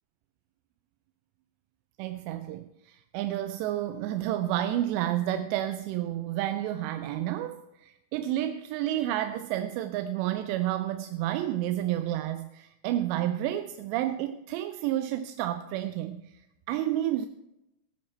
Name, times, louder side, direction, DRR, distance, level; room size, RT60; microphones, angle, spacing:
voice 1, 2.0-16.3 16.7-17.3, right 13 dB, 90° right, 9 dB, 2.8 m, -30 dB
14.5 x 10.5 x 4.4 m, 0.89 s
omnidirectional pair, 4.9 m